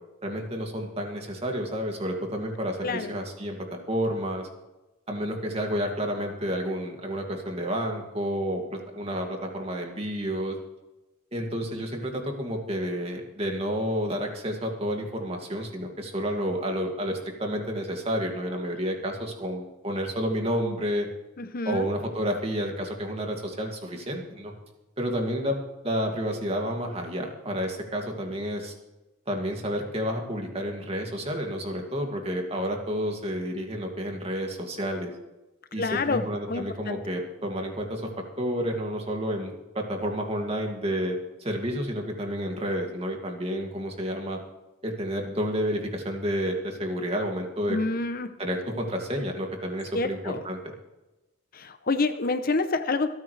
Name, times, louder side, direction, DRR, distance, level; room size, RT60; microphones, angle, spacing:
voice 1, 0.2-3.6 3.9-4.5 5.1-10.6 11.3-21.1 21.7-24.5 25.0-25.6 25.8-28.7 29.3-35.1 35.7-38.1 38.4-41.1 41.4-44.4 44.8-47.8 48.4-50.6, equal, 30° right, 2 dB, 2.3 m, -30 dB
voice 2, 21.4-21.9 35.8-37.0 47.7-48.4 49.9-50.4 51.5-53.1, left 3 dB, 45° left, 10 dB, 0.7 m, -28 dB
27.0 x 9.1 x 3.3 m, 1.0 s
head